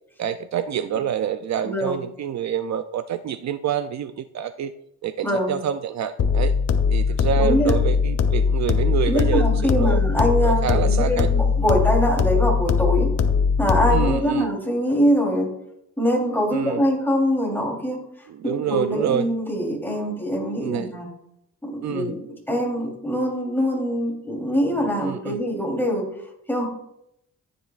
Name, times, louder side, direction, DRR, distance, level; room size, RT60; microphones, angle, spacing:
voice 1, 0.2-4.7 5.0-6.5 6.9-10.0 10.4-11.3 13.9-14.5 16.5-16.8 18.3-19.3 20.6-20.9 21.8-22.1 25.0-25.4, right 9 dB, 60° right, 10 dB, 0.5 m, -27 dB
voice 2, 1.6-2.0 5.2-5.5 7.4-7.7 9.1-13.1 13.6-15.5 16.0-18.0 18.4-21.1 21.6-22.2 22.5-26.1 26.5-26.7, equal, 5° left, -1 dB, 3.4 m, -23 dB
sound 1, 6.2-14.2, left 5 dB, 50° left, 0.9 m, -20 dB
15.0 x 9.4 x 2.5 m, 0.79 s
cardioid pair, 120°, 32 cm